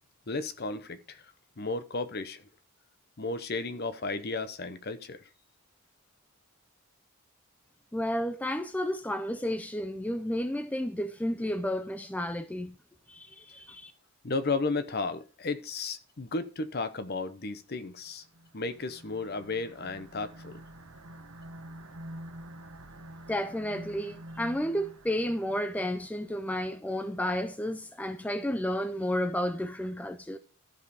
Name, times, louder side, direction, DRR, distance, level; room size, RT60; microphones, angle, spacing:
voice 1, 0.3-1.3 1.6-2.4 3.2-5.2 14.2-18.2 18.5-20.6, left 3 dB, 45° left, 0.8 m, -34 dB
voice 2, 7.9-12.8 13.1-13.9 23.3-30.4, equal, 5° left, 0.4 m, -32 dB
sound 1, 18.1-26.7, right 1 dB, 85° right, 1.3 m, -48 dB
12.5 x 5.3 x 4.9 m
head